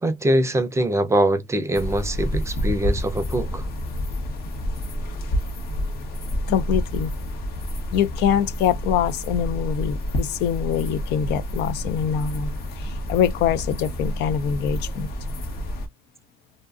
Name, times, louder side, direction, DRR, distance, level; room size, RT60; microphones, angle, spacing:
voice 1, 0.0-3.7, right 1 dB, 15° right, 0.5 m, -23 dB
sound 1, 1.7-15.9, equal, 65° left, 1.0 m, -29 dB
voice 2, 6.4-7.1 7.9-12.5 12.8-15.1, left 9 dB, 80° left, 0.5 m, -24 dB
2.6 x 2.5 x 2.3 m
cardioid pair, 110°, 17 cm